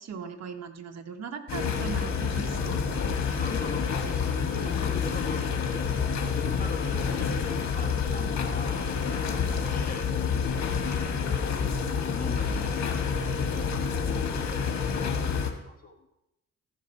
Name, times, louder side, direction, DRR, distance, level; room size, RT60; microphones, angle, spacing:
voice 1, 0.0-2.8, right 6 dB, 60° right, 5 dB, 1.4 m, -38 dB
sound 1, 1.5-15.5, left 6 dB, 65° left, 1.8 m, -28 dB
voice 2, 3.3-16.1, left 4 dB, 30° left, 3 dB, 1.4 m, -41 dB
14.5 x 5.4 x 5.8 m, 0.89 s
cardioid pair, 90°, 30 cm